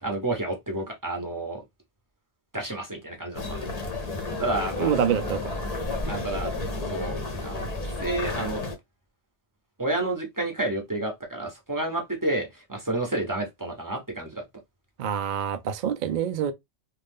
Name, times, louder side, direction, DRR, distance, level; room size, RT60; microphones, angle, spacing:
voice 1, 0.0-1.6 2.5-3.7 4.4-4.9 6.1-6.5 6.9-8.6 9.8-14.4, right 2 dB, 20° right, 0.7 m, -30 dB
sound 1, 3.3-8.8, left 2 dB, 40° left, 0.7 m, -31 dB
voice 2, 4.8-5.6 15.0-16.5, right 8 dB, 60° right, 0.5 m, -26 dB
2.5 x 2.4 x 3.5 m
omnidirectional pair, 1.2 m